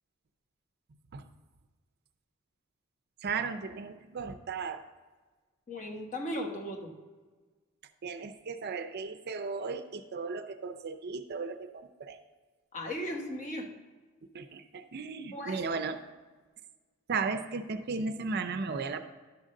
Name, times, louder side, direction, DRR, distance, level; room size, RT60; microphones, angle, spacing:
voice 1, 3.2-4.9 8.0-12.2 14.3-16.0 17.1-19.0, right 4 dB, 50° right, 8 dB, 0.5 m, -35 dB
voice 2, 5.7-6.9 12.7-13.7 15.3-15.6, equal, 35° left, 1 dB, 1.3 m, -36 dB
11.0 x 3.8 x 6.4 m, 1.3 s
head